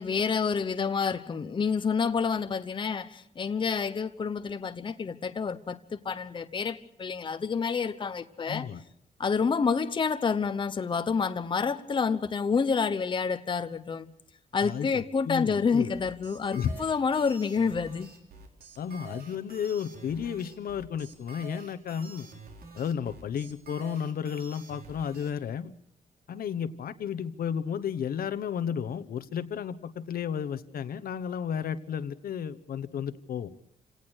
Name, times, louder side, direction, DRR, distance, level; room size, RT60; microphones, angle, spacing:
voice 1, 0.0-8.7 9.2-14.1 14.5-18.1, left 5 dB, 30° left, 0.9 m, -28 dB
voice 2, 8.5-8.8 14.6-15.9 16.5-16.7 18.8-22.3 22.7-25.7 26.3-33.5, left 8 dB, 75° left, 1.1 m, -33 dB
sound 1, 15.9-25.3, right 4 dB, 75° right, 4.2 m, -48 dB
28.5 x 18.0 x 6.4 m
wide cardioid pair, 150°, 15 cm